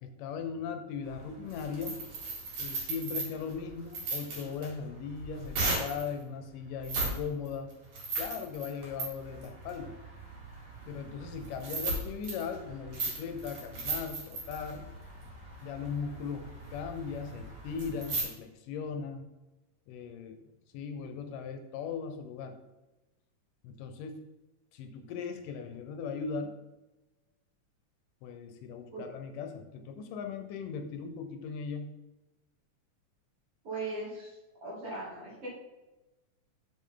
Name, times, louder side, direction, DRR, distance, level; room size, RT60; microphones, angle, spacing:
voice 1, 0.0-2.0 2.6-7.7 8.2-9.9 10.9-14.9 15.6-19.3 19.9-20.4 20.7-22.6 23.6-24.2 24.7-26.5 28.2-31.9, left 6 dB, 85° left, 6 dB, 2.4 m, -38 dB
sound 1, 1.0-6.1 6.8-7.2 7.5-18.2, right 3 dB, 80° right, 4.1 m, -37 dB
voice 2, 33.6-34.3 34.6-35.5, right 2 dB, 45° right, -7 dB, 3.5 m, -38 dB
7.5 x 7.0 x 3.8 m, 1.0 s
omnidirectional pair, 3.7 m